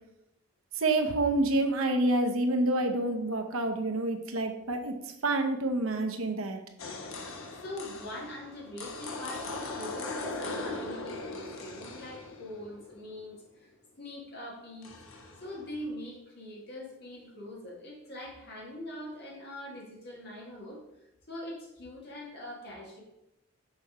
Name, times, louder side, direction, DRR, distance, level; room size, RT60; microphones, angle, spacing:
voice 1, 0.8-4.9 5.2-6.6, right 2 dB, 75° right, 4 dB, 0.8 m, -28 dB
sound 1, 6.8-13.1 14.8-15.9, left 3 dB, 70° left, 0.9 m, -40 dB
voice 2, 7.6-20.8 21.3-23.0, left 1 dB, 50° left, -3 dB, 1.9 m, -43 dB
6.3 x 4.2 x 4.9 m, 0.89 s
head